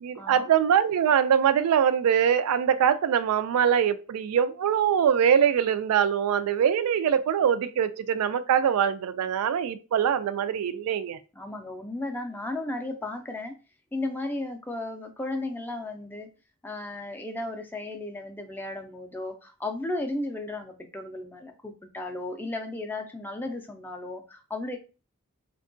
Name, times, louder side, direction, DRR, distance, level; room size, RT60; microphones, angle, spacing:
voice 1, 0.0-11.2, right 8 dB, 80° right, 0.3 m, -23 dB
voice 2, 11.3-13.5 13.9-16.3 16.6-24.8, left 2 dB, 10° left, 0.3 m, -34 dB
3.5 x 2.2 x 2.5 m
head